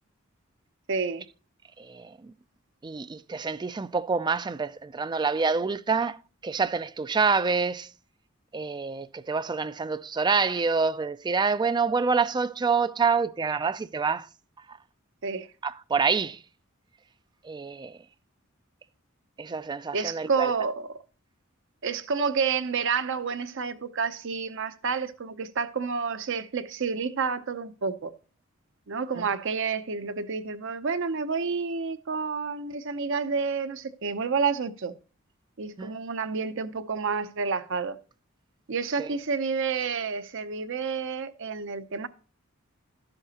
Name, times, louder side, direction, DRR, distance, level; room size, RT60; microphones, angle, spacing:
voice 1, 0.9-1.2 15.2-15.5 19.9-21.0 21.8-28.1 28.9-34.9 35.6-38.0 38.7-42.1, right 5 dB, 65° right, 0.7 m, -29 dB
voice 2, 1.8-2.3 2.8-7.9 8.5-14.3 14.7-14.8 15.6-16.4 17.4-18.0 19.4-20.5 29.2-29.3 35.8-35.9 39.0-39.1, right 5 dB, 20° right, 0.3 m, -27 dB
12.0 x 7.8 x 2.9 m
head